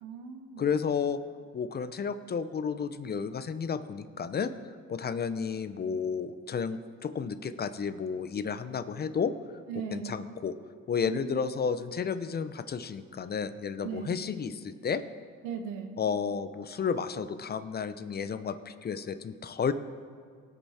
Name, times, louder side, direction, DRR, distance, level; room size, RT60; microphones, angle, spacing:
voice 1, 0.0-0.7 9.7-10.1 11.1-11.4 13.8-14.1 15.4-15.9, right 6 dB, 85° right, 6 dB, 1.2 m, -38 dB
voice 2, 0.6-1.2 1.5-4.5 4.9-9.3 9.9-10.6 10.9-15.0 16.0-19.7, left 6 dB, 30° left, 12 dB, 0.6 m, -32 dB
18.0 x 6.7 x 4.3 m, 2.1 s
supercardioid pair, 75°, 31 cm